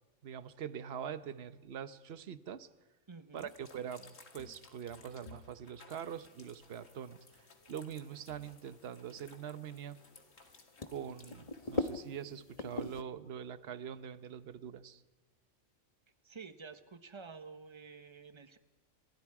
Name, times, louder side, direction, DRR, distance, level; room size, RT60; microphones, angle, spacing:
voice 1, 0.2-2.7 3.3-10.0 10.9-15.0, right 8 dB, 55° right, 13 dB, 1.1 m, -44 dB
voice 2, 3.1-3.5 16.2-18.6, right 5 dB, 25° right, 9 dB, 1.2 m, -50 dB
sound 1, 3.4-11.9, left 3 dB, 90° left, 2.7 m, -59 dB
sound 2, 5.9-13.0, left 2 dB, 30° left, 1.2 m, -44 dB
29.5 x 27.0 x 4.8 m, 1.2 s
omnidirectional pair, 1.3 m